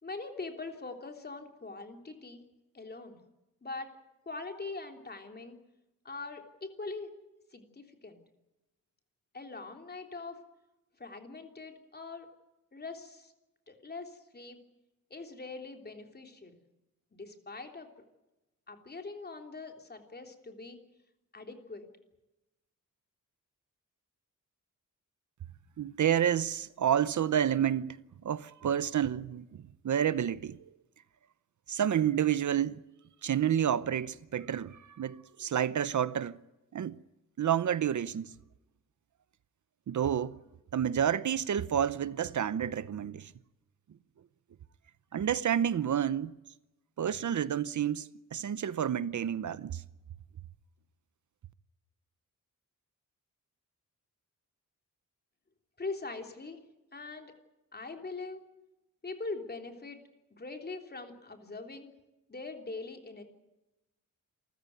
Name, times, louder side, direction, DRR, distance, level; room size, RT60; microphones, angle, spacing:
voice 1, 0.0-2.4 2.7-3.2 3.6-3.9 4.2-5.6 6.0-7.1 7.5-8.2 9.3-10.4 11.0-12.3 12.7-13.3 13.7-14.6 15.1-16.6 17.1-17.9 18.7-20.8 21.3-21.9 55.8-56.6 56.9-57.3 57.7-58.4 59.0-60.0 60.3-61.9 62.3-63.2, left 3 dB, 30° left, 3.3 m, -42 dB
voice 2, 25.8-30.6 31.7-32.8 33.2-36.4 36.7-37.0 37.4-38.3 39.9-40.4 40.7-43.3 45.1-46.3 47.0-49.8, right 9 dB, 65° right, 0.8 m, -29 dB
27.5 x 14.5 x 9.5 m
wide cardioid pair, 135°, 32 cm